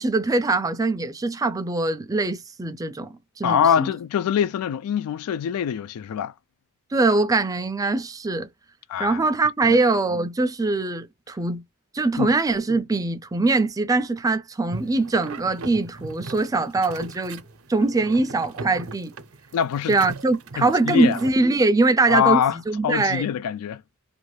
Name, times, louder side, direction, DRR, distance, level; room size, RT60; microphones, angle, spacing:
voice 1, 0.0-3.9 6.9-8.5 9.0-11.6 11.9-17.4 17.7-19.1 19.9-23.3, right 3 dB, 15° right, 0.3 m, -22 dB
voice 2, 3.4-6.3 8.9-9.2 9.6-9.8 12.2-12.3 19.5-20.0 20.6-21.2 22.1-22.6 22.8-23.8, left 8 dB, 85° left, 0.3 m, -23 dB
sound 1, 14.7-21.3, right 3 dB, 70° right, 0.6 m, -39 dB
2.6 x 2.2 x 3.1 m
head